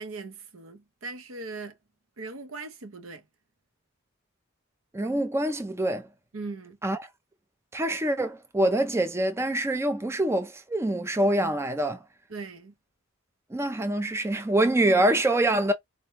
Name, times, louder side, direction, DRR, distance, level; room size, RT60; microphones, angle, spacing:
voice 1, 0.0-1.8 2.2-3.2 6.3-6.8 12.3-12.7, right 3 dB, 75° right, 0.8 m, -39 dB
voice 2, 4.9-6.1 6.8-7.1 7.7-12.0 13.5-15.7, right 1 dB, 15° right, 0.4 m, -25 dB
4.1 x 2.2 x 3.0 m
head